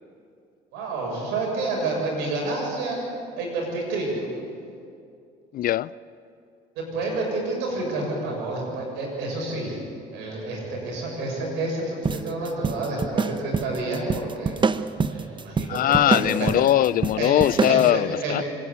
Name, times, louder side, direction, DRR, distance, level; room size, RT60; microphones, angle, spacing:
voice 1, 0.7-3.0 3.4-4.3 6.8-9.8 10.1-14.7 15.1-16.5 17.2-17.4 17.7-18.4, right 2 dB, 80° right, 7.0 m, -29 dB
voice 2, 5.5-5.9 15.7-18.4, left 13 dB, 55° left, 0.4 m, -21 dB
sound 1, 12.0-17.9, right 5 dB, 25° right, 0.8 m, -26 dB
25.5 x 11.0 x 9.9 m
supercardioid pair, 75°, 18 cm